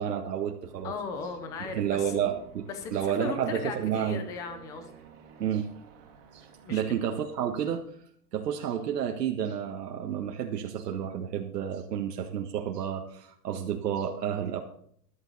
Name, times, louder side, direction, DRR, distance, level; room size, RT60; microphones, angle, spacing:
voice 1, 0.0-0.9 1.7-4.2 5.4-5.7 6.3-7.8 8.3-14.6, right 9 dB, 85° right, 2 dB, 1.6 m, -30 dB
Aircraft, 0.6-8.0, right 6 dB, 40° right, 2.8 m, -53 dB
voice 2, 0.8-2.1 2.7-4.9 6.6-6.8, left 5 dB, 5° left, 8 dB, 0.5 m, -37 dB
13.5 x 12.0 x 4.1 m, 0.63 s
hypercardioid pair, 160°, 47 cm